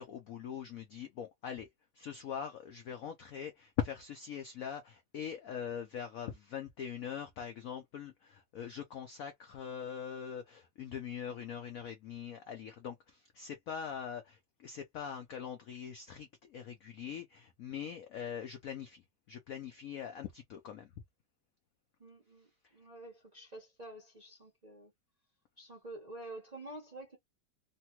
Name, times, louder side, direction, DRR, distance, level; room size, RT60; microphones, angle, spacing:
voice 1, 0.0-1.7 1.9-20.9, left 8 dB, 85° left, 0.7 m, -42 dB
voice 2, 22.0-24.9 25.6-27.2, right 1 dB, 40° right, 0.5 m, -49 dB
3.2 x 2.3 x 2.8 m
omnidirectional pair, 2.2 m